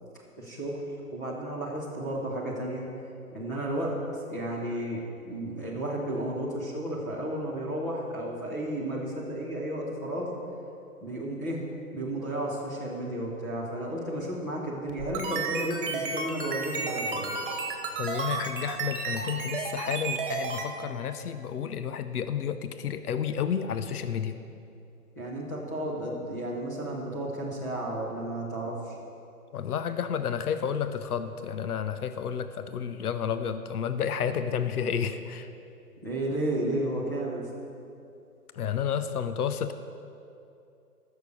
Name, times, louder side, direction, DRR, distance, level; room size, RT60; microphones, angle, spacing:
voice 1, 0.4-0.8 1.1-2.8 3.3-5.0 5.3-10.3 11.0-11.6 11.9-17.3 25.2-29.0 36.0-37.4, right 1 dB, 10° left, -6 dB, 0.8 m, -33 dB
sound 1, 14.9-20.7, right 4 dB, 35° right, 1.5 m, -32 dB
voice 2, 18.0-24.4 29.5-35.5 38.6-39.7, left 7 dB, 70° left, 11 dB, 0.8 m, -31 dB
13.5 x 6.7 x 6.9 m, 2.6 s
hypercardioid pair, 165°, 47 cm